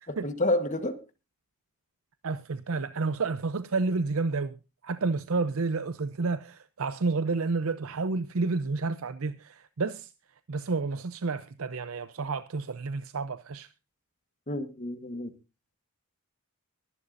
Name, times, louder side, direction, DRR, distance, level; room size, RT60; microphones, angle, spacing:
voice 1, 0.1-1.0 14.5-15.3, left 1 dB, 35° left, 1.3 m, -29 dB
voice 2, 2.2-4.5 4.8-10.1 10.5-13.7, right 3 dB, 75° right, 0.6 m, -30 dB
23.0 x 11.0 x 2.6 m
head